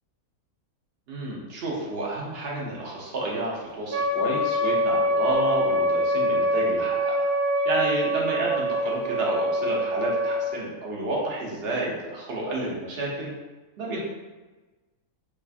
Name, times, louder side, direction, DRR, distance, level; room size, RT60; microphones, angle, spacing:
voice 1, 1.1-7.4 7.6-13.3 13.8-14.0, right 2 dB, 55° right, -4 dB, 0.7 m, -30 dB
Wind instrument woodwind instrument, 3.9-10.5, equal, 75° right, 1.0 m, -24 dB
3.3 x 2.3 x 2.3 m, 1.2 s
omnidirectional pair, 1.5 m